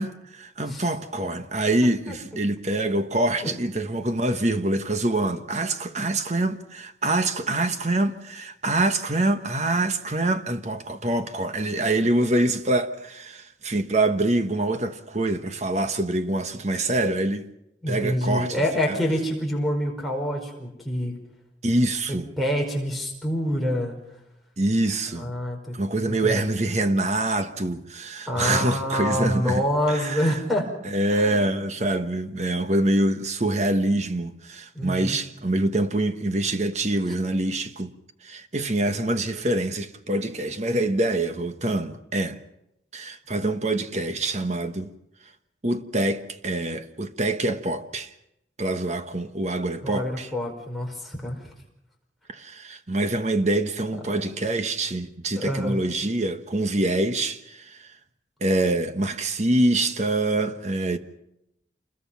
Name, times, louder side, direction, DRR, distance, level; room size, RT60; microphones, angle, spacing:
voice 1, 0.0-17.4 17.9-19.0 21.6-22.3 24.6-25.3 25.7-30.4 30.8-37.9 38.2-42.4 42.9-44.9 45.6-48.1 48.6-50.3 52.3-57.9 58.4-61.0, right 2 dB, 40° right, 1.3 m, -25 dB
voice 2, 17.8-21.2 22.4-24.0 25.1-25.7 26.1-26.5 28.3-30.7 31.1-31.6 34.7-35.2 49.8-51.5 54.0-54.3 55.3-55.8, equal, ahead, 4.9 m, -27 dB
28.0 x 21.5 x 5.8 m
head